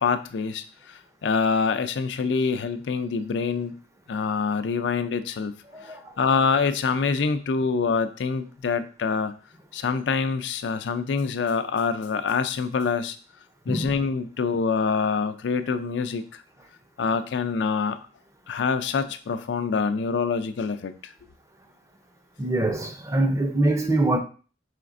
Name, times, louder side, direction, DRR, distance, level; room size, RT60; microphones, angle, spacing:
voice 1, 0.0-3.7 4.1-5.5 5.8-9.3 9.7-13.2 13.7-16.4 17.0-18.1 18.5-21.1, left 5 dB, 85° left, 0.4 m, -25 dB
voice 2, 5.7-6.1 13.7-13.9 22.4-24.2, right 2 dB, 15° right, 0.5 m, -24 dB
5.0 x 3.3 x 2.5 m
head